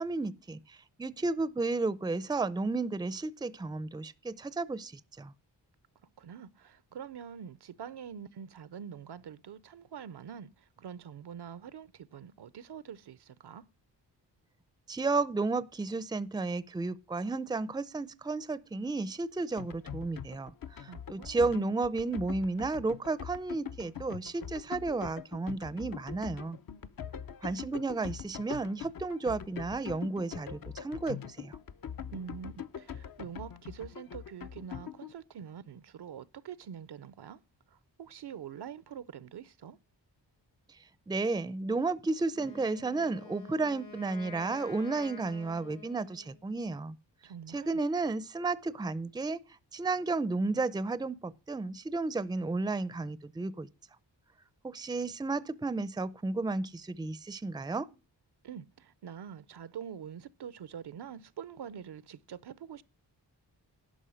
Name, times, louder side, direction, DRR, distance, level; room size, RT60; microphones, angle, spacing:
voice 1, 0.0-4.9 5.2-5.3 14.9-26.6 27.4-31.6 41.1-47.0 47.5-49.4 49.7-53.7 54.6-57.9, right 3 dB, 10° right, 0.5 m, -33 dB
voice 2, 6.2-13.7 20.9-21.5 32.1-37.4 37.7-39.8 47.2-47.8 58.4-62.8, right 8 dB, 65° right, 0.6 m, -45 dB
sound 1, 19.6-35.1, left 8 dB, 50° left, 0.7 m, -43 dB
Wind instrument woodwind instrument, 42.3-46.4, left 4 dB, 80° left, 4.9 m, -49 dB
11.5 x 5.4 x 6.3 m
cardioid pair, 65°, 43 cm